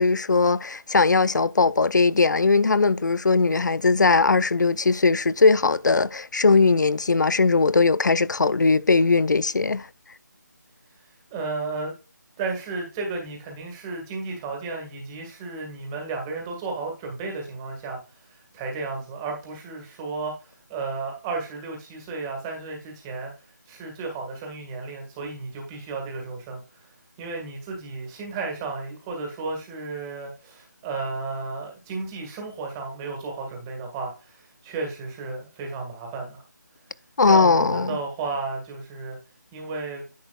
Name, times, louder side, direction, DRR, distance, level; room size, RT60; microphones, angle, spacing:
voice 1, 0.0-9.9 37.2-38.0, left 4 dB, 75° left, 0.6 m, -19 dB
voice 2, 11.3-11.9 12.4-23.3 23.7-26.9 27.2-36.4 37.2-39.2 39.5-40.0, right 3 dB, 10° right, 1.8 m, -33 dB
10.5 x 8.1 x 2.3 m
figure-of-eight pair, 170°, 10 cm